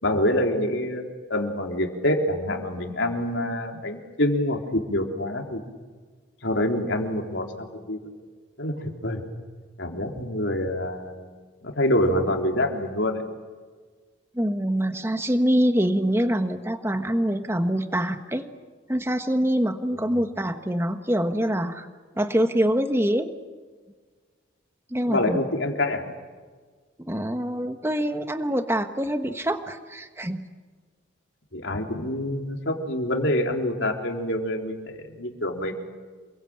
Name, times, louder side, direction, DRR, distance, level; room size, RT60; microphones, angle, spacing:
voice 1, 0.0-1.0 1.3-5.6 6.4-8.0 8.6-9.2 9.8-11.3 11.6-13.2 19.9-20.0 25.1-26.0 31.5-35.7, left 1 dB, 70° left, 2 dB, 3.6 m, -26 dB
voice 2, 14.3-18.5 18.9-21.9 22.2-23.3 24.9-25.4 27.0-30.4, equal, 10° right, 7 dB, 1.4 m, -25 dB
28.5 x 22.5 x 8.8 m, 1.5 s
head